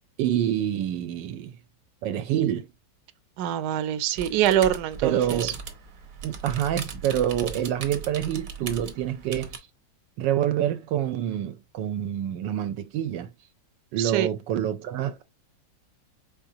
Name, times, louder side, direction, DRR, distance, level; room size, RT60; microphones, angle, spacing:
voice 1, 0.2-1.5 2.0-2.7 5.0-5.6 6.2-9.6 10.2-13.3 13.9-15.2, right 10 dB, 90° right, 1.3 m, -27 dB
voice 2, 3.4-5.5 14.0-14.3, right 11 dB, 70° right, 1.1 m, -24 dB
sound 1, 4.2-9.6, right 6 dB, 55° right, 1.1 m, -38 dB
5.1 x 3.7 x 2.7 m
omnidirectional pair, 1.9 m